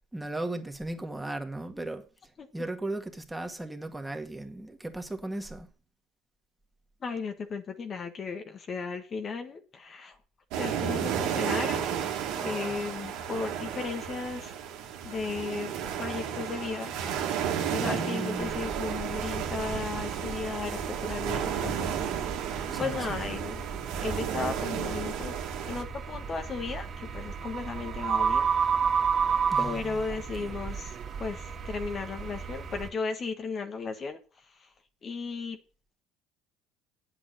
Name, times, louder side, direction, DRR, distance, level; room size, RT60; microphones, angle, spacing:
voice 1, 0.1-2.0 2.5-5.7 12.3-13.1 17.8-18.8 22.7-23.3 29.5-30.5, right 2 dB, 10° right, 1.9 m, -37 dB
voice 2, 7.0-10.2 10.6-11.9 12.4-14.5 15.0-15.7 16.0-16.9 17.7-22.3 22.8-23.6 24.0-25.3 25.7-28.5 29.6-30.9 31.2-34.2 35.0-35.6, left 4 dB, 40° left, 1.4 m, -35 dB
sound 1, 10.5-25.8, right 8 dB, 70° right, 1.9 m, -33 dB
sound 2, 18.4-32.9, right 6 dB, 45° right, 2.3 m, -33 dB
8.5 x 8.0 x 6.4 m
hypercardioid pair, 70°, 0 cm